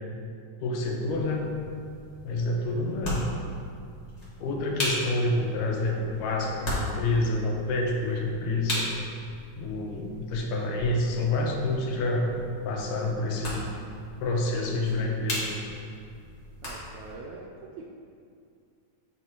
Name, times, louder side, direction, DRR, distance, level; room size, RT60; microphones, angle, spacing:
voice 1, 0.6-1.5 2.2-3.3 4.4-8.9 9.6-12.3 12.7-13.6 14.2-15.6, left 2 dB, 85° left, 0 dB, 2.4 m, -28 dB
sound 1, 0.7-17.1, equal, 30° left, 1.2 m, -38 dB
voice 2, 16.6-17.9, right 4 dB, 80° right, -1 dB, 1.7 m, -43 dB
9.0 x 3.1 x 4.5 m, 2.4 s
omnidirectional pair, 3.8 m